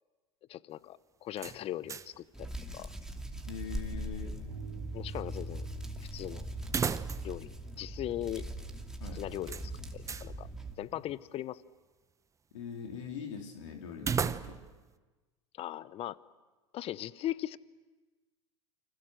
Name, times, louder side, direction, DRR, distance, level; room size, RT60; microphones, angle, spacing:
voice 1, 0.5-2.9 4.9-5.7 6.1-6.5 7.2-8.4 9.1-10.5 10.8-11.6 15.6-16.2 16.7-17.6, left 13 dB, 40° left, 19 dB, 0.8 m, -39 dB
sound 1, 1.4-2.3 2.6-2.7 6.6-7.5 7.8-7.9 9.5-10.3 14.0-14.8, right 6 dB, 20° right, 0.8 m, -35 dB
Hands, 2.3-10.7, right 1 dB, 5° right, 2.4 m, -41 dB
voice 2, 3.5-4.3 9.0-9.2 12.5-14.6, left 6 dB, 75° left, 2 dB, 3.4 m, -42 dB
sound 2, 4.5-10.7, right 3 dB, 90° right, 4.7 m, -48 dB
29.5 x 25.5 x 6.5 m, 1.2 s
hypercardioid pair, 95°, 16 cm